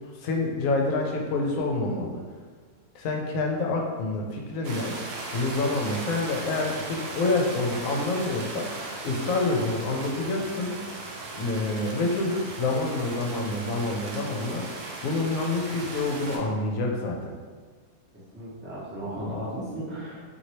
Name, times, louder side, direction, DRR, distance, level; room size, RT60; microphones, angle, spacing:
voice 1, 0.2-2.2 2.9-4.9 5.3-8.7 9.0-10.7 11.3-14.7 15.0-17.3, left 2 dB, 70° left, 1 dB, 0.9 m, -27 dB
sound 1, 4.6-16.4, right 2 dB, 65° right, 0.8 m, -37 dB
voice 2, 18.1-20.2, equal, 15° right, -9 dB, 0.3 m, -35 dB
3.0 x 2.6 x 2.8 m, 1.5 s
omnidirectional pair, 1.6 m